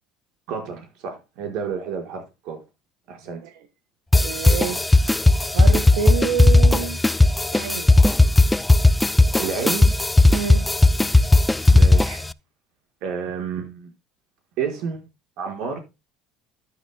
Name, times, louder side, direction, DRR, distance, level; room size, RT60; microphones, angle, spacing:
voice 1, 0.5-2.6 3.1-3.4 9.4-9.9 11.7-12.2 13.0-13.9 14.6-15.0 15.4-15.8, right 6 dB, 70° right, 5.0 m, -30 dB
sound 1, 4.1-12.3, left 2 dB, 10° left, 0.4 m, -16 dB
voice 2, 4.2-4.9 5.5-7.0 7.5-7.9 10.3-10.6, right 7 dB, 90° right, 1.4 m, -27 dB
13.5 x 8.9 x 2.2 m
supercardioid pair, 120°, 0 cm